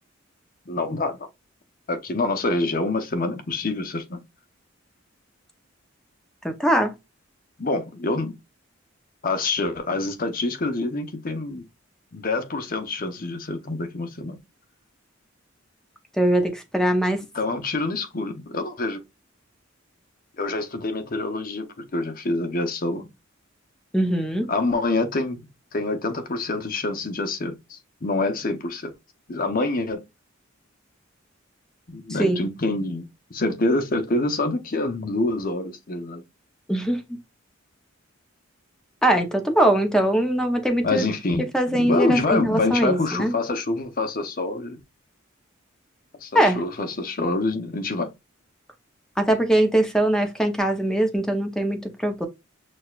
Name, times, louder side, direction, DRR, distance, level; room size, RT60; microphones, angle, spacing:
voice 1, 0.7-1.2 1.9-4.2 7.6-8.3 9.2-11.6 12.1-14.4 17.3-19.0 20.4-21.7 21.9-23.1 24.5-25.4 25.7-28.9 29.3-30.0 31.9-36.2 40.8-44.8 46.2-48.1, left 2 dB, 45° left, 0.7 m, -26 dB
voice 2, 6.4-6.9 16.2-17.2 23.9-24.5 32.2-32.4 36.7-37.2 39.0-41.0 41.5-43.3 46.3-46.6 49.2-52.3, right 1 dB, 5° left, 0.7 m, -21 dB
6.2 x 2.3 x 2.4 m
head